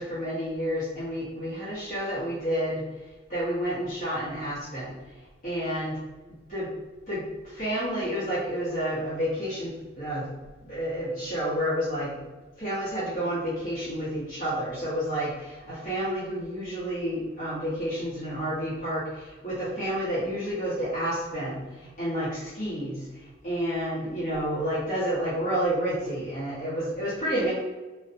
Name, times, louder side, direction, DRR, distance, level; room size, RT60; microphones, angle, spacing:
voice 1, 0.0-2.8 3.3-5.0 5.4-6.0 6.5-6.7 7.1-7.2 7.5-10.3 10.6-12.1 12.6-21.6 22.0-23.0 23.4-27.5, equal, 40° left, -11 dB, 0.8 m, -30 dB
2.6 x 2.1 x 2.4 m, 1.2 s
head